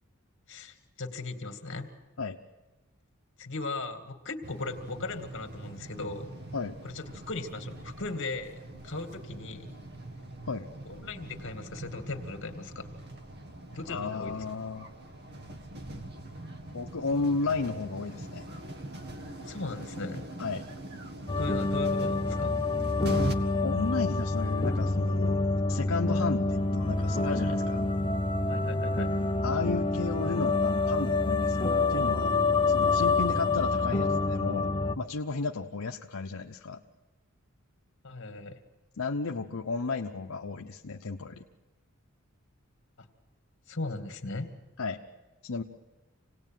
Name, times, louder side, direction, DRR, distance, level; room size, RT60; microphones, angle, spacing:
voice 1, 0.5-1.9 3.4-6.3 6.8-9.8 10.8-12.9 13.7-14.4 19.4-20.3 21.4-22.6 28.5-29.1 33.0-33.1 38.0-38.6 43.0-43.1 43.7-44.5, left 3 dB, 60° left, 7 dB, 2.3 m, -38 dB
sound 1, 4.4-23.3, right 1 dB, 50° right, 1.7 m, -42 dB
voice 2, 13.9-14.9 16.7-18.4 20.4-20.6 23.5-27.8 29.4-32.3 32.7-36.8 39.0-41.4 44.8-45.0 45.4-45.6, left 4 dB, 80° left, 2 dB, 0.9 m, -33 dB
sound 2, 21.3-35.0, left 3 dB, 25° left, 0.9 m, -27 dB
27.0 x 18.5 x 9.2 m, 1.2 s
head